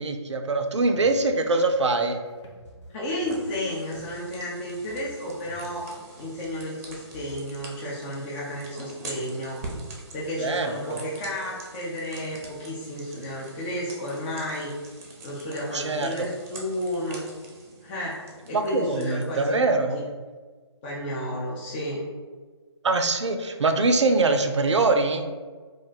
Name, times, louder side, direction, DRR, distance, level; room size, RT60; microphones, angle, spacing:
voice 1, 0.0-2.2 10.4-11.0 15.7-16.3 18.5-20.0 22.8-25.2, right 3 dB, 85° right, 6 dB, 0.4 m, -23 dB
sound 1, 0.6-7.2, equal, 80° left, 0.8 m, -50 dB
voice 2, 2.9-5.9 6.2-9.6 10.1-14.7 15.2-17.3 17.8-19.6 20.8-22.1, equal, 25° left, -6 dB, 0.5 m, -32 dB
sound 2, 3.2-19.5, right 2 dB, 35° right, 0.6 m, -45 dB
2.4 x 2.2 x 3.9 m, 1.5 s
figure-of-eight pair, 145°, 15 cm